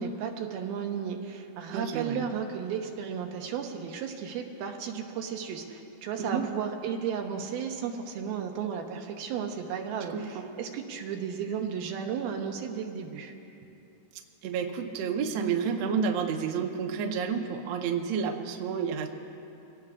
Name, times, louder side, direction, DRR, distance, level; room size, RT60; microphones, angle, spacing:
voice 1, 0.0-13.3, right 7 dB, 90° right, 3 dB, 2.9 m, -34 dB
voice 2, 1.7-2.3 6.2-6.4 10.1-10.5 14.4-19.1, right 6 dB, 75° right, 3 dB, 1.5 m, -30 dB
25.0 x 17.5 x 2.4 m, 2.8 s
omnidirectional pair, 4.2 m